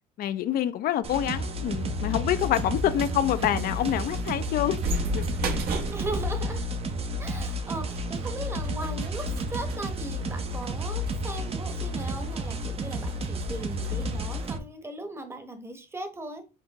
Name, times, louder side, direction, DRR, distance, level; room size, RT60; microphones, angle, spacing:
voice 1, 0.2-4.8 5.1-5.2, left 11 dB, 60° left, 0.5 m, -26 dB
sound 1, 1.0-14.6, equal, 35° right, 0.7 m, -31 dB
sound 2, 1.0-14.6, right 2 dB, 65° right, 1.1 m, -37 dB
voice 2, 5.9-6.7 7.2-16.4, right 1 dB, 15° right, 1.0 m, -38 dB
4.5 x 3.4 x 3.0 m
cardioid pair, 95°, 17 cm